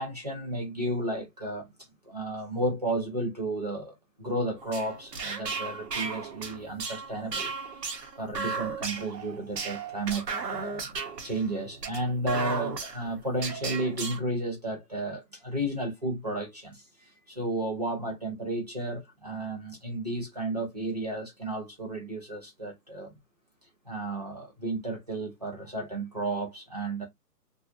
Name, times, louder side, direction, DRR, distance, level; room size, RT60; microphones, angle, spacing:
voice 1, 0.0-1.7 2.0-7.5 8.2-11.0 11.2-16.8 17.3-23.2 23.9-27.1, right 1 dB, 25° right, 0.6 m, -33 dB
sound 1, 4.6-14.2, right 4 dB, 75° right, 1.1 m, -35 dB
2.8 x 2.4 x 2.4 m
hypercardioid pair, 170°, 48 cm